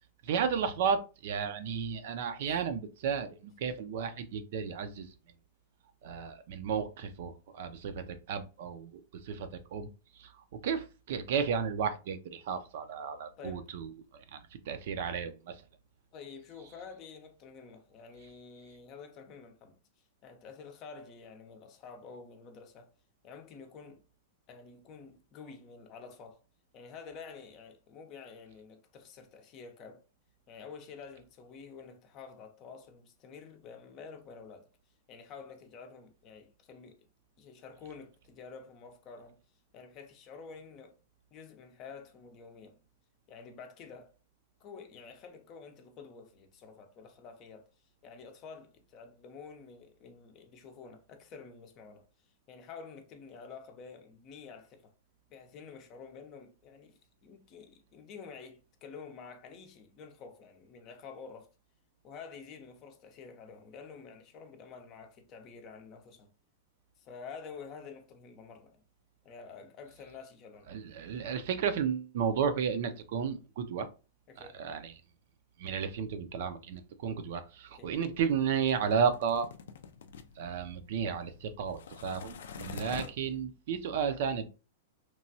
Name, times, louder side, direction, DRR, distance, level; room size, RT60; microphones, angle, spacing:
voice 1, 0.2-5.1 6.0-8.9 9.2-9.9 10.2-10.3 10.6-13.9 14.3-14.4 14.7-15.5 70.7-73.9 74.5-74.9 75.6-79.5 80.4-84.5, right 7 dB, 65° right, 0.4 m, -33 dB
voice 2, 13.4-13.7 16.1-19.8 20.2-22.9 23.2-24.1 24.5-26.4 26.7-30.1 30.5-34.7 35.1-37.1 37.4-39.4 39.7-41.0 41.3-42.8 43.3-44.1 44.6-47.7 48.0-54.9 55.3-61.5 62.0-66.3 67.0-68.9 69.2-70.7 74.3-74.6 77.7-78.0 82.9-83.1, left 5 dB, 35° left, 0.5 m, -49 dB
sound 1, 77.9-83.5, left 6 dB, 85° left, 0.4 m, -47 dB
3.0 x 2.2 x 2.6 m
hypercardioid pair, 140°, 0 cm